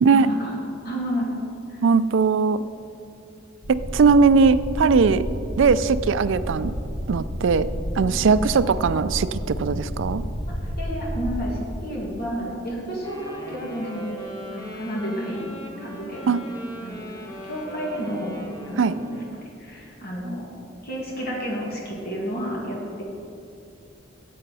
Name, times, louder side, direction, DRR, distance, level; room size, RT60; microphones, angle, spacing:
voice 1, 0.1-0.6 0.8-1.3 1.7-1.8 8.0-8.2 10.5-14.1 14.5-15.4 15.8-16.4 16.8-19.2 19.6-20.4 20.8-23.0, equal, 55° left, -4 dB, 2.2 m, -31 dB
voice 2, 1.8-2.6 3.7-5.2 5.6-6.7 7.1-7.7 8.0-10.2 16.3-16.4 18.8-19.0, right 5 dB, 70° right, 14 dB, 0.4 m, -19 dB
sound 1, 3.6-11.4, equal, 90° left, 1.9 m, -31 dB
Wind instrument woodwind instrument, 13.0-19.5, right 1 dB, 20° left, 1.5 m, -39 dB
14.0 x 8.5 x 4.1 m, 2.6 s
head